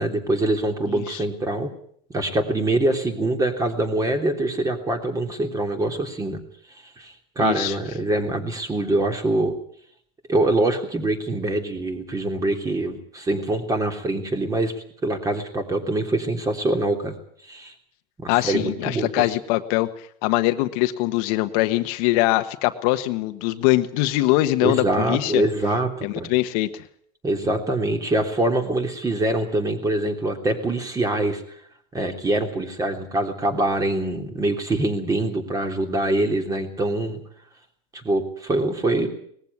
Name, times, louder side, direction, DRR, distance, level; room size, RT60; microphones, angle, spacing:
voice 1, 0.0-1.7 2.1-6.4 7.0-9.5 10.3-14.7 15.0-17.1 17.4-17.7 18.2-19.3 24.6-26.3 27.2-31.4 31.9-37.2 37.9-39.1, right 2 dB, 15° right, 5 dB, 3.2 m, -24 dB
voice 2, 0.9-1.2 7.4-7.8 18.3-25.4 26.0-26.8, left 17 dB, 60° left, 9 dB, 1.4 m, -22 dB
20.0 x 15.0 x 9.6 m, 0.65 s
supercardioid pair, 130°, 20 cm